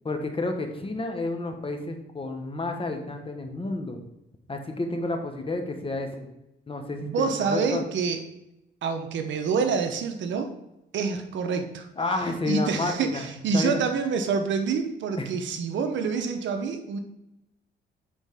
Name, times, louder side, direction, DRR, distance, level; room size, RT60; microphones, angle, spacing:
voice 1, 0.0-4.0 4.5-6.3 6.7-7.8 12.0-13.3 13.5-13.8 15.2-15.3, left 2 dB, 25° left, 4 dB, 1.2 m, -30 dB
voice 2, 7.0-8.2 8.8-10.5 10.9-11.9 12.5-17.0, right 5 dB, 70° right, 7 dB, 0.9 m, -27 dB
9.6 x 4.2 x 3.6 m, 0.87 s
cardioid pair, 90°, 20 cm